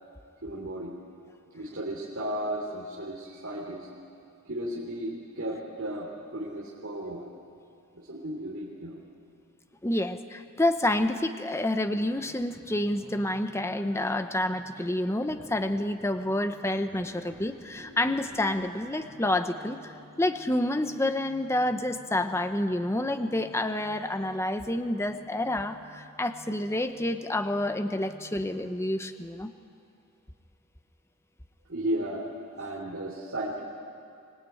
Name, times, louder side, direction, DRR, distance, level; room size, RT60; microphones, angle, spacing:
voice 1, 0.4-0.9 1.5-3.9 4.5-7.3 7.9-9.0 31.7-32.3 32.5-33.6, right 1 dB, 60° right, -4 dB, 3.5 m, -34 dB
voice 2, 9.8-19.9 20.2-29.5, left 1 dB, 10° left, 8 dB, 0.8 m, -28 dB
sound 1, 11.9-28.6, right 1 dB, 20° right, 7.9 m, -54 dB
25.5 x 20.0 x 9.3 m, 2.4 s
head